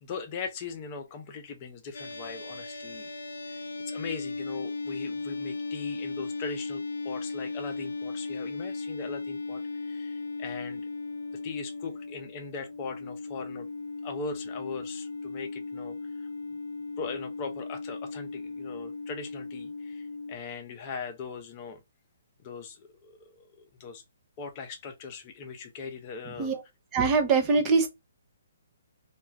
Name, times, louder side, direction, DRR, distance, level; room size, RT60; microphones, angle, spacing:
voice 1, 0.0-3.1 3.5-3.6 3.9-10.8 11.4-13.7 14.0-16.3 17.0-21.8 22.4-24.0 24.4-26.6, left 5 dB, 35° left, 0.6 m, -40 dB
sound 1, 1.9-20.4, left 3 dB, 80° left, 0.5 m, -37 dB
voice 2, 26.9-27.9, right 4 dB, 25° right, 0.7 m, -23 dB
2.3 x 2.1 x 3.2 m
figure-of-eight pair, 135°, 0 cm